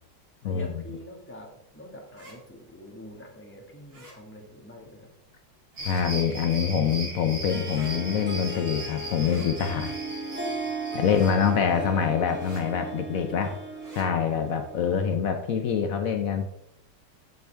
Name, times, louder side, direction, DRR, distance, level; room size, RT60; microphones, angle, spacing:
voice 1, 0.4-5.1, left 1 dB, 5° left, 0 dB, 1.3 m, -45 dB
sound 1, 2.1-2.4 3.9-4.2 5.7-6.1 7.6-7.9 9.2-9.5 11.0-11.4 12.4-12.6 13.8-14.1, right 1 dB, 45° right, 2.6 m, -48 dB
voice 2, 5.8-9.9 10.9-13.6 13.9-16.5, left 7 dB, 85° left, 6 dB, 0.7 m, -25 dB
sound 2, 5.8-11.5, right 2 dB, 65° right, 3.7 m, -38 dB
Harp, 7.5-15.2, right 2 dB, 10° right, 0.5 m, -37 dB
9.3 x 6.8 x 3.4 m, 0.79 s
omnidirectional pair, 2.3 m